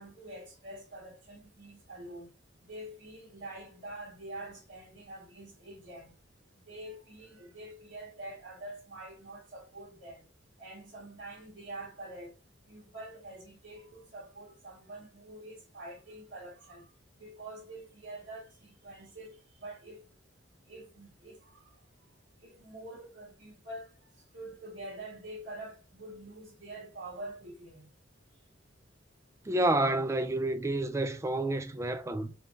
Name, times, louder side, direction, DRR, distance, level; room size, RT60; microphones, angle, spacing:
voice 1, 0.0-2.3 2.7-6.1 6.7-10.2 10.6-12.3 12.7-16.9 17.2-20.1 20.7-21.6 22.4-23.9 24.3-27.9, right 1 dB, 60° right, 1.7 m, -46 dB
voice 2, 29.5-32.3, right 1 dB, 15° right, 0.4 m, -29 dB
5.0 x 3.3 x 2.6 m
head